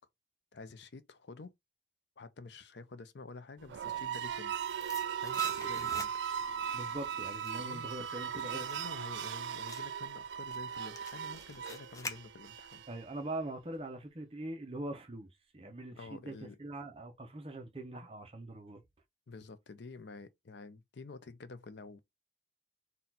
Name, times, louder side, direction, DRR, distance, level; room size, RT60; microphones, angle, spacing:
voice 1, 0.5-1.5 2.2-4.6 5.2-6.1 7.6-12.8 15.9-16.6 19.3-22.0, left 3 dB, 75° left, 0.6 m, -49 dB
sound 1, 3.6-13.0, right 8 dB, 85° right, 0.3 m, -38 dB
sound 2, 4.1-6.5 6.9-12.7 13.0-13.1, left 3 dB, 20° left, 0.5 m, -48 dB
voice 2, 6.7-8.7 12.9-18.8, right 1 dB, 30° right, 0.6 m, -42 dB
4.1 x 2.3 x 4.0 m
head